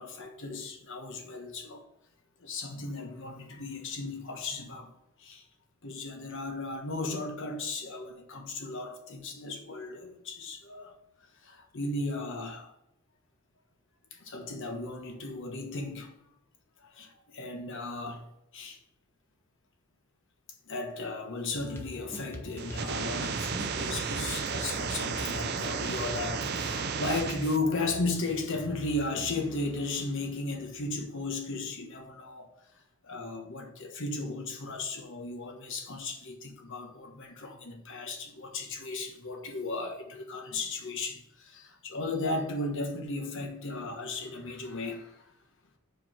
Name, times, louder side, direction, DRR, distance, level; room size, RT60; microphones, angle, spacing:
voice 1, 0.0-1.8 2.4-4.9 5.2-5.4 5.8-10.9 11.4-12.7 14.1-16.1 16.8-18.2 18.5-18.8 20.7-32.5 33.0-45.2, left 2 dB, 60° left, 1.2 m, -35 dB
sound 1, 21.5-29.3, left 1 dB, 10° left, 0.8 m, -46 dB
sound 2, 22.6-27.6, right 5 dB, 50° right, 0.6 m, -33 dB
4.9 x 4.7 x 5.8 m
head